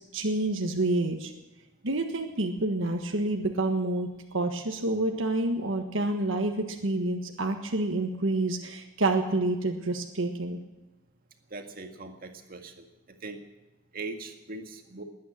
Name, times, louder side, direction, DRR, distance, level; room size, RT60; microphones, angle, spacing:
voice 1, 0.1-1.3 1.8-4.1 4.3-10.6, right 2 dB, 70° right, 3 dB, 1.5 m, -28 dB
voice 2, 11.5-13.4 13.9-15.0, right 3 dB, 45° right, 4 dB, 2.0 m, -41 dB
20.0 x 9.5 x 7.5 m, 1.1 s
head